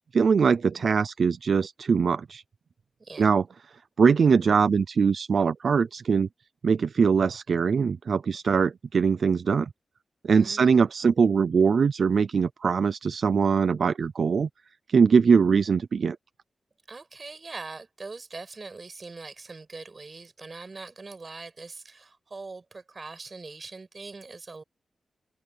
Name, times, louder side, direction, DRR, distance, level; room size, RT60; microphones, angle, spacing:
voice 1, 0.1-2.4 3.2-3.4 4.0-6.3 6.6-9.7 10.3-14.5 14.9-16.2, right 5 dB, 65° right, 0.5 m, -22 dB
voice 2, 3.0-3.3 10.3-10.9 16.9-24.6, right 3 dB, 40° right, 7.8 m, -42 dB
open air
wide cardioid pair, 95°, 0 cm